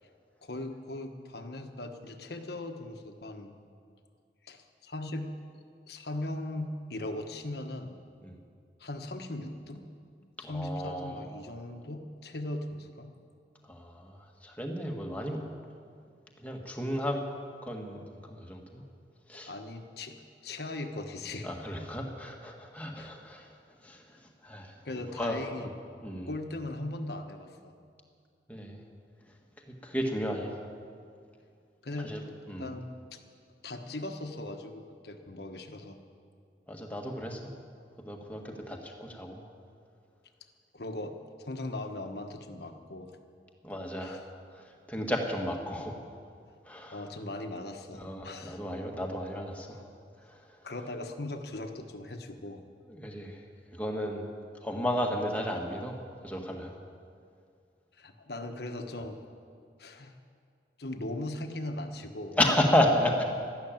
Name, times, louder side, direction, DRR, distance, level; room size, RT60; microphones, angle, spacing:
voice 1, 0.4-3.5 4.4-5.3 5.9-8.0 8.8-9.8 10.4-13.1 19.5-20.2 20.4-21.5 23.0-23.1 24.8-25.7 26.3-27.7 31.8-32.1 32.6-33.2 33.6-36.0 40.7-43.1 44.0-44.2 46.9-48.6 50.6-52.6 58.0-59.2 59.8-60.1 60.8-62.4, left 1 dB, 65° left, 5 dB, 1.3 m, -39 dB
voice 2, 10.4-11.3 13.7-15.4 16.4-17.2 17.6-18.8 19.3-19.5 21.4-23.5 23.8-24.0 24.4-24.7 25.2-25.7 26.0-26.3 28.5-28.8 29.8-30.5 32.0-32.2 32.5-32.7 36.7-37.5 38.0-39.4 43.6-44.2 44.9-45.9 46.6-47.1 47.9-49.8 52.9-53.4 53.7-54.3 54.6-56.7 62.4-63.2, left 1 dB, 10° left, 1 dB, 1.5 m, -32 dB
13.0 x 12.0 x 9.0 m, 2.3 s
head